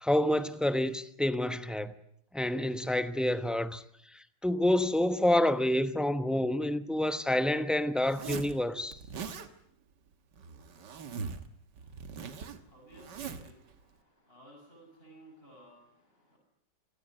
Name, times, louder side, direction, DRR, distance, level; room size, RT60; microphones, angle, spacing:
voice 1, 0.0-1.9 2.3-3.8 4.4-9.0, left 1 dB, ahead, 0.6 m, -28 dB
Zipper (clothing), 8.0-8.5 8.9-9.5 10.3-11.5 11.8-13.5, right 6 dB, 70° right, 2.1 m, -41 dB
voice 2, 11.8-16.4, equal, 30° left, 7.1 m, -57 dB
27.5 x 17.5 x 9.2 m
omnidirectional pair, 1.9 m